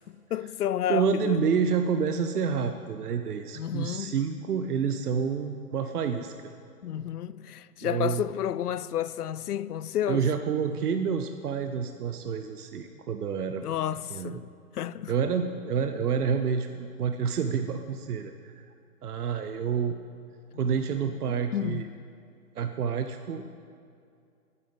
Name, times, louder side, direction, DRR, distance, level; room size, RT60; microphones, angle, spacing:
voice 1, 0.3-1.4 3.5-4.2 6.8-10.3 13.6-15.1 21.3-21.9, left 10 dB, 80° left, 0.6 m, -31 dB
voice 2, 0.9-6.3 7.8-8.2 10.1-13.6 14.1-14.4 15.1-18.6 19.0-20.0 20.6-21.9 22.6-23.4, right 6 dB, 75° right, 0.9 m, -28 dB
9.9 x 9.0 x 8.0 m
hypercardioid pair, 130°, 46 cm